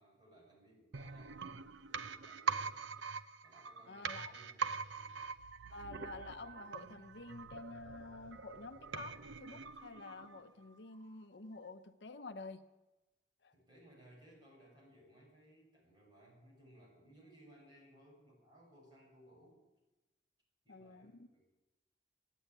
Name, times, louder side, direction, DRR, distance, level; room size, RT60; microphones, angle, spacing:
voice 1, 0.0-1.5 1.8-2.8 3.4-4.7 4.9-5.2 13.5-19.6 20.6-21.4, right 1 dB, 25° right, -3 dB, 7.0 m, -62 dB
sound 1, 0.9-10.6 10.9-11.0, right 5 dB, 90° right, 0.7 m, -43 dB
voice 2, 3.9-4.3 5.7-12.6 13.4-13.5 20.7-21.3, left 3 dB, 70° left, 9 dB, 0.8 m, -49 dB
15.5 x 10.0 x 9.1 m, 1.1 s
head